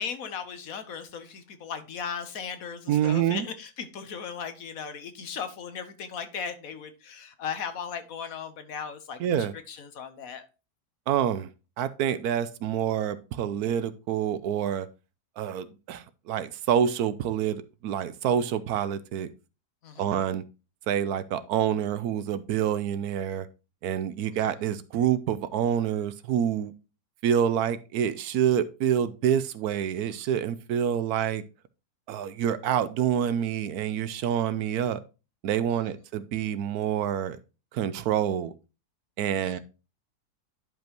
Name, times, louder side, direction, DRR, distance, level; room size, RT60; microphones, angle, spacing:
voice 1, 0.0-10.5 19.8-20.2 24.3-24.5 35.7-35.8 39.4-39.6, left 6 dB, 65° left, 10 dB, 1.2 m, -37 dB
voice 2, 2.9-3.4 9.2-9.5 11.1-11.5 11.8-14.9 15.4-19.3 20.0-20.4 20.9-23.5 23.8-26.7 27.2-31.4 32.1-35.0 35.4-37.4 37.7-38.5 39.2-39.6, right 9 dB, 80° right, 14 dB, 1.1 m, -27 dB
11.0 x 5.2 x 3.0 m, 0.31 s
omnidirectional pair, 1.7 m